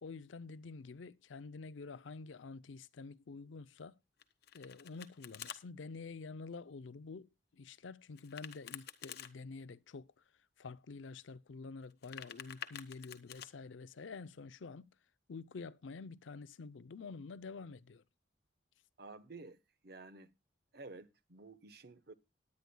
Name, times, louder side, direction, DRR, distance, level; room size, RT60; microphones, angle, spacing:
voice 1, 0.0-3.9 4.5-7.3 7.5-10.2 10.6-14.9 15.3-18.0, left 4 dB, 80° left, 0.5 m, -48 dB
Domestic sounds home sounds, 4.2-5.6 8.2-9.3 11.8-13.5, left 9 dB, 55° left, 1.0 m, -49 dB
voice 2, 19.0-20.3 20.7-22.1, right 3 dB, 55° right, 1.0 m, -52 dB
19.5 x 9.6 x 2.2 m
head